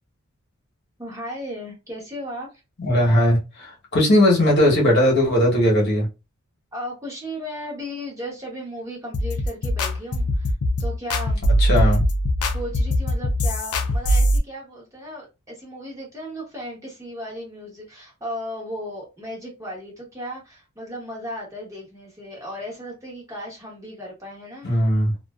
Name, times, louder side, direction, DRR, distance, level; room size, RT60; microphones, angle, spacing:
voice 1, 1.0-2.5 6.7-10.5 10.8-11.5 12.5-24.7, equal, 15° right, 0.9 m, -35 dB
voice 2, 2.8-6.1 11.6-12.0 24.6-25.1, left 1 dB, 50° left, 1.0 m, -18 dB
sound 1, 9.1-14.4, equal, 75° left, 0.5 m, -21 dB
2.5 x 2.3 x 2.2 m
head